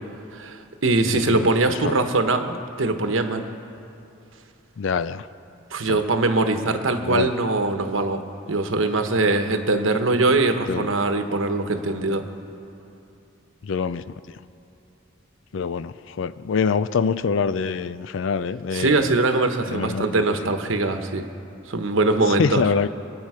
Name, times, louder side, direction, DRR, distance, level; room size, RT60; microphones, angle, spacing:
voice 1, 0.3-3.4 5.7-8.2 8.5-12.2 18.7-21.3 21.7-22.6, right 2 dB, 75° right, 7 dB, 1.1 m, -22 dB
voice 2, 1.1-1.5 2.0-2.1 4.8-5.2 5.9-6.0 7.0-7.3 10.7-10.9 13.6-14.0 15.5-19.1 19.7-20.2 22.4-22.9, left 5 dB, 70° left, 14 dB, 0.4 m, -25 dB
27.0 x 9.0 x 4.9 m, 2.7 s
head